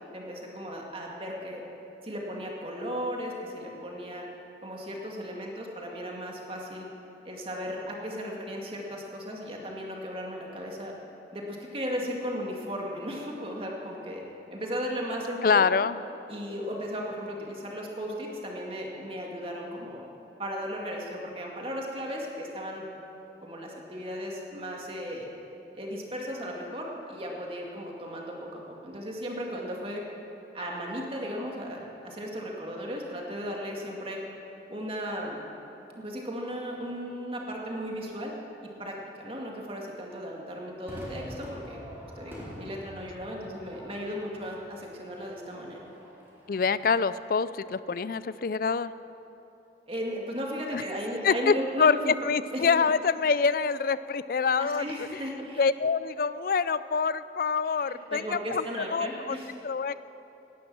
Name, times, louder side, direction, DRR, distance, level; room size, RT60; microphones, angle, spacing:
voice 1, 0.1-1.6 2.0-4.2 4.6-6.9 7.2-10.9 11.3-14.2 14.5-15.7 16.3-20.0 20.4-22.9 23.4-25.3 25.7-30.0 30.5-34.2 34.7-35.4 36.0-38.3 38.6-41.8 42.2-45.8 49.9-52.2 52.5-52.9 54.6-55.6 57.8-59.5, equal, 30° right, -1 dB, 2.2 m, -36 dB
voice 2, 15.4-16.0 46.5-48.9 50.7-50.8 51.2-55.2 55.6-59.4 59.6-60.0, left 5 dB, 50° left, 16 dB, 0.4 m, -26 dB
Crowd / Fireworks, 40.9-47.4, equal, 10° right, 3.7 m, -46 dB
18.0 x 11.5 x 6.2 m, 3.0 s
head